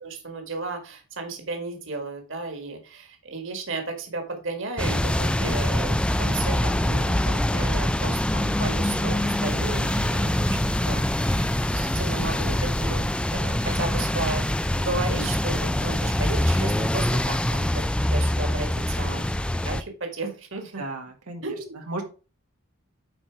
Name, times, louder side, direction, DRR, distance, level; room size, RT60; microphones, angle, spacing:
voice 1, 0.0-10.6 10.9-13.0 13.3-14.4 14.7-19.2 19.6-20.8 21.4-21.8, right 3 dB, 55° right, 5 dB, 1.8 m, -34 dB
sound 1, 4.8-19.8, left 1 dB, 5° left, 0.3 m, -24 dB
voice 2, 20.8-22.1, right 2 dB, 90° right, 3 dB, 1.7 m, -35 dB
9.9 x 4.5 x 4.6 m, 0.34 s
head